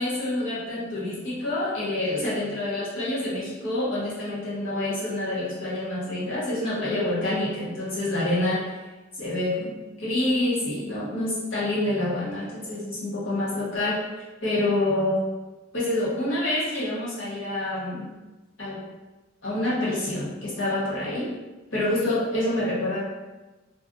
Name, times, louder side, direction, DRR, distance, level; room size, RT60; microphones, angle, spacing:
voice 1, 0.0-8.8 9.2-14.0 14.4-15.2 15.7-18.1 18.6-18.8 19.4-21.3 21.7-23.0, left 1 dB, 90° left, -8 dB, 1.2 m, -27 dB
2.4 x 2.2 x 3.9 m, 1.2 s
head